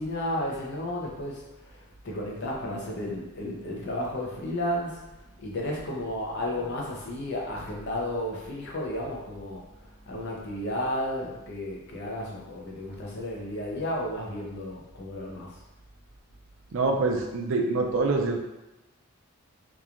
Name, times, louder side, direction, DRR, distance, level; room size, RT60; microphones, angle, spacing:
voice 1, 0.0-15.6, left 1 dB, 50° left, -2 dB, 0.5 m, -33 dB
voice 2, 16.7-18.4, right 3 dB, 55° right, 1 dB, 0.3 m, -25 dB
2.9 x 2.3 x 2.4 m, 1.0 s
head